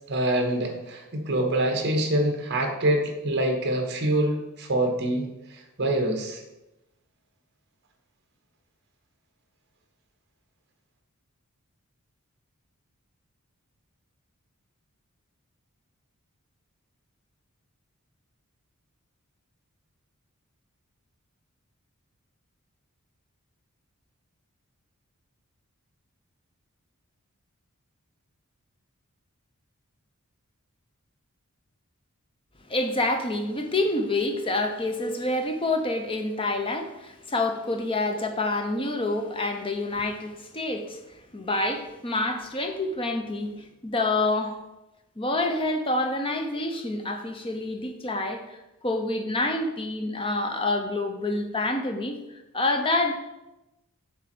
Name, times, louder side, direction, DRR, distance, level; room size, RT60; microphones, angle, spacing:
voice 1, 0.1-5.3 5.8-6.4, right 1 dB, 50° right, 4 dB, 1.1 m, -25 dB
voice 2, 32.7-44.6 45.2-53.2, left 2 dB, 25° left, 5 dB, 0.8 m, -27 dB
7.1 x 4.1 x 6.0 m, 0.97 s
head